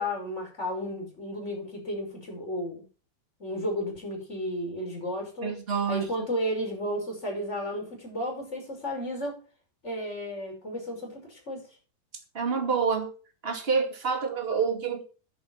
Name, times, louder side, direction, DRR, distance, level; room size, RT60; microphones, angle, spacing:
voice 1, 0.0-2.8 3.4-5.6 5.9-9.4 9.8-11.6, equal, 15° left, 5.5 m, -33 dB
voice 2, 5.4-6.0 12.3-13.1 13.4-15.0, right 5 dB, 20° right, 1.7 m, -27 dB
11.0 x 10.0 x 5.9 m
omnidirectional pair, 4.5 m